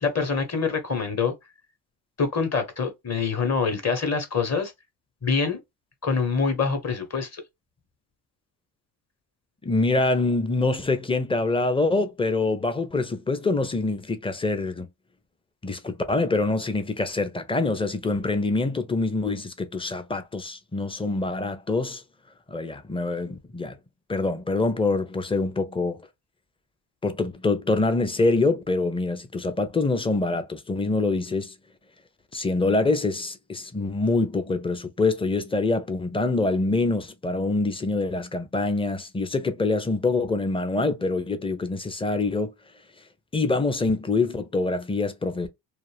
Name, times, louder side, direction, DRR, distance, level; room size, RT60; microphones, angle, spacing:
voice 1, 0.0-1.3 2.2-4.7 5.2-5.6 6.0-7.4, left 5 dB, 35° left, 1.1 m, -25 dB
voice 2, 9.6-14.9 15.6-22.0 22.5-23.8 24.1-26.0 27.0-31.5 32.3-42.5 43.3-45.5, left 3 dB, 10° left, 0.6 m, -25 dB
2.5 x 2.1 x 3.3 m
supercardioid pair, 70°, 45 cm